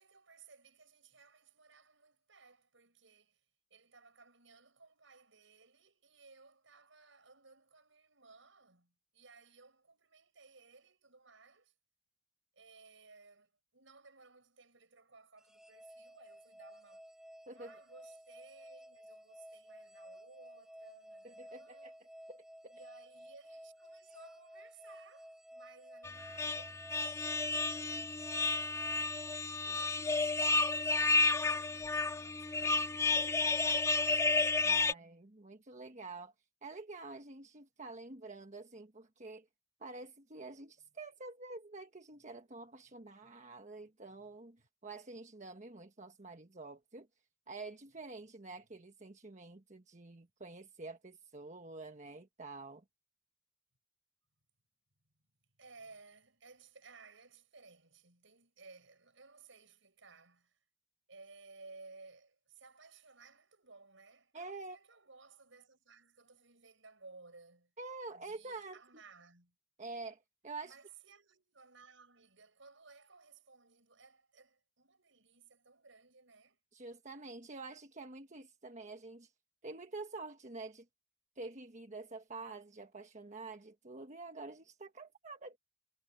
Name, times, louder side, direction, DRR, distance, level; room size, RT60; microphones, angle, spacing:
voice 1, 0.0-11.7 12.5-17.0 17.5-22.0 22.7-26.8 27.5-31.1 31.4-35.0 43.2-43.3 55.6-60.6 61.1-67.7 68.1-69.6 70.6-76.6, right 4 dB, 75° right, 7.0 m, -59 dB
sound 1, 15.4-29.8, equal, 5° right, 3.0 m, -54 dB
voice 2, 21.2-21.9 22.3-22.7 29.7-29.8 34.6-36.3 36.6-39.5 39.8-47.1 47.5-52.8 64.3-64.8 67.8-68.8 69.8-70.8 76.7-79.3 79.6-80.8 81.4-85.6, right 3 dB, 40° right, 1.4 m, -48 dB
sound 2, 26.0-34.9, left 3 dB, 15° left, 0.4 m, -31 dB
head